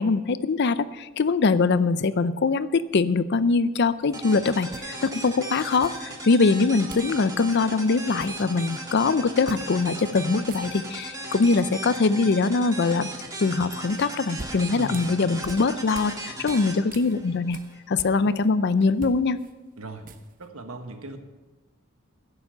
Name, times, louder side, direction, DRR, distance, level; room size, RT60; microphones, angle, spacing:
voice 1, 0.0-13.1 13.4-17.6 17.9-19.4, left 4 dB, 55° left, 15 dB, 0.5 m, -23 dB
sound 1, 4.0-4.2 4.7-5.3 5.8-6.4 6.9-7.2 7.4-7.6 8.0-8.8 9.5-9.7 10.0-10.1 10.4-11.1 14.0-16.2 16.5-18.5 18.8-20.5, right 3 dB, 40° right, 0.8 m, -43 dB
sound 2, 4.1-17.8, right 1 dB, 15° right, 1.6 m, -37 dB
voice 2, 14.7-15.1 19.8-20.1 20.4-21.2, right 2 dB, 90° right, 6 dB, 1.4 m, -38 dB
16.0 x 7.0 x 5.8 m, 1.2 s
head